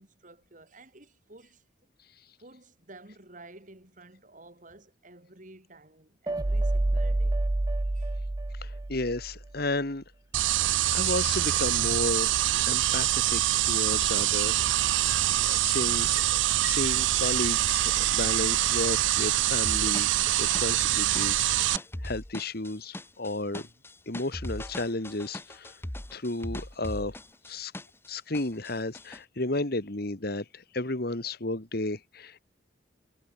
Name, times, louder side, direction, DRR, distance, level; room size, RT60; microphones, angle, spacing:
voice 1, 0.0-1.6 2.4-7.4 7.9-8.2, right 2 dB, 45° right, 4.3 m, -52 dB
sound 1, 6.3-9.4, right 2 dB, 20° right, 0.4 m, -28 dB
voice 2, 8.6-10.0 10.9-14.6 15.4-20.1 20.4-23.7 24.1-25.8 26.1-27.1 27.5-27.7 28.1-32.4, left 2 dB, 55° left, 2.0 m, -33 dB
sound 2, 10.3-21.8, right 14 dB, 85° right, 0.5 m, -25 dB
sound 3, 19.6-28.1 28.3-29.2, left 1 dB, 15° left, 1.2 m, -39 dB
head